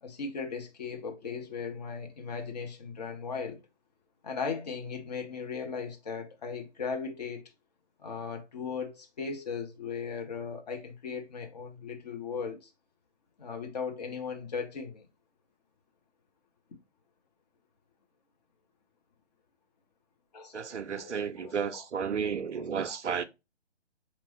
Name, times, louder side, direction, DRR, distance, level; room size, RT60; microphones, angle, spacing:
voice 1, 0.0-3.6 4.2-7.5 8.0-12.7 13.4-15.0 20.3-21.8, left 5 dB, 35° left, 0.8 m, -37 dB
voice 2, 20.5-23.3, right 6 dB, 70° right, 0.5 m, -32 dB
3.9 x 3.1 x 2.9 m
figure-of-eight pair, 135°, 36 cm